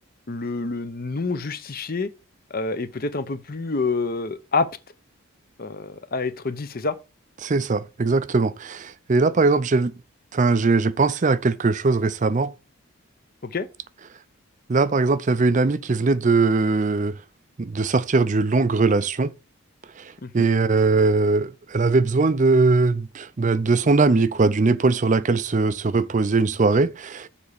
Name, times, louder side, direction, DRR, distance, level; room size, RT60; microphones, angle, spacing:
voice 1, 0.3-2.1 2.5-4.7 5.6-6.9 13.4-13.7 20.2-20.5, left 3 dB, 40° left, 0.7 m, -27 dB
voice 2, 7.4-9.9 10.3-12.5 14.7-17.2 17.6-19.3 20.0-27.3, right 3 dB, 35° right, 0.4 m, -20 dB
7.1 x 4.2 x 6.6 m
head